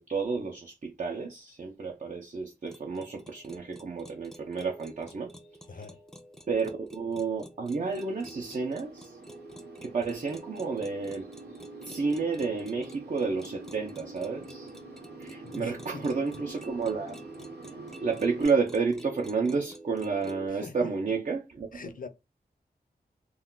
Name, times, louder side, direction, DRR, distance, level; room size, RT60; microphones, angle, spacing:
voice 1, 0.0-5.3 5.7-5.8 6.5-9.2 9.8-11.3 11.8-14.7 15.2-17.2 18.0-21.8, right 4 dB, 50° right, 0.6 m, -31 dB
sound 1, 2.7-20.5, right 1 dB, 5° left, 0.5 m, -48 dB
sound 2, 7.8-18.4, right 2 dB, 90° right, 0.8 m, -47 dB
voice 2, 15.4-16.0 20.5-20.9 21.7-22.1, left 4 dB, 55° left, 0.5 m, -42 dB
2.4 x 2.3 x 3.6 m
wide cardioid pair, 75°, 17 cm